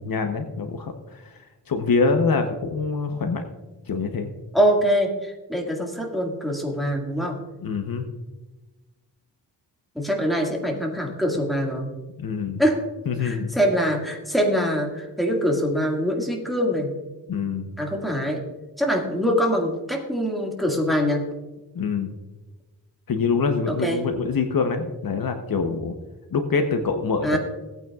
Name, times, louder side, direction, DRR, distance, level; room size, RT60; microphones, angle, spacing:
voice 1, 0.0-1.4 1.7-3.4 3.9-4.3 7.6-8.1 12.2-12.6 13.1-13.5 17.3-17.7 21.7-22.1 23.1-25.9 26.3-27.4, left 4 dB, 55° left, 6 dB, 0.9 m, -25 dB
voice 2, 4.5-7.4 10.0-11.9 12.6-12.8 13.2-16.9 17.8-18.4 18.8-21.3 23.7-24.0 27.2-27.4, equal, ahead, -1 dB, 1.9 m, -24 dB
18.0 x 9.1 x 2.4 m, 1.1 s
wide cardioid pair, 130°, 41 cm